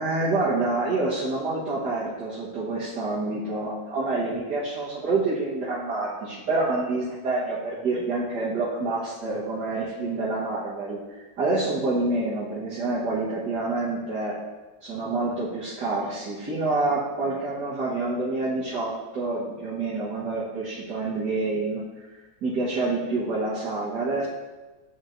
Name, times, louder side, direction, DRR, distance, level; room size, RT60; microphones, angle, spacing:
voice 1, 0.0-11.0 11.4-14.4 14.8-21.8 22.4-24.3, right 3 dB, 60° right, -9 dB, 1.9 m, -27 dB
10.5 x 4.4 x 2.6 m, 1.2 s
omnidirectional pair, 2.2 m